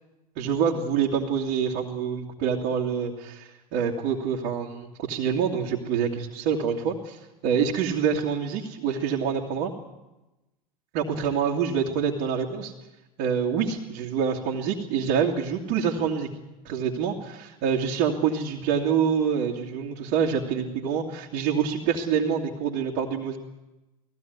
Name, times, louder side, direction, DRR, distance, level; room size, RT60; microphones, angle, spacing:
voice 1, 0.4-9.7 10.9-12.7 13.2-16.3 16.6-17.1 17.6-23.4, right 7 dB, 60° right, -3 dB, 2.6 m, -26 dB
18.5 x 16.0 x 9.5 m, 1.0 s
hypercardioid pair, 90°, 20 cm